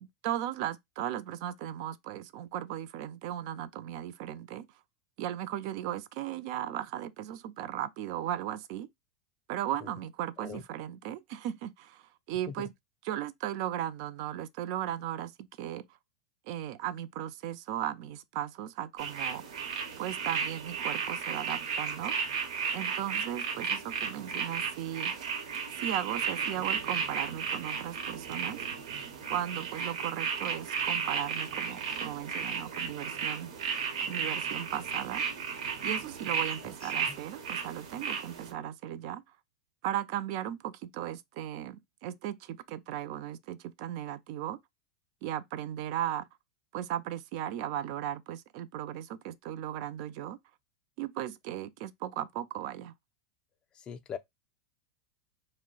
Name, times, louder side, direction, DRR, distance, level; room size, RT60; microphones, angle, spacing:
voice 1, 0.0-4.7 5.2-8.9 9.5-12.7 13.0-15.9 16.5-19.4 20.0-22.2 22.7-25.1 25.8-28.6 29.3-33.5 34.0-35.2 35.8-39.2 39.8-44.6 45.2-46.3 46.7-50.4 51.0-52.9, right 11 dB, 55° right, 0.3 m, -36 dB
sound 1, 19.0-38.5, right 6 dB, 75° right, 0.8 m, -34 dB
voice 2, 53.8-54.2, left 7 dB, 25° left, 0.3 m, -40 dB
2.2 x 2.0 x 3.8 m
supercardioid pair, 125°, 3 cm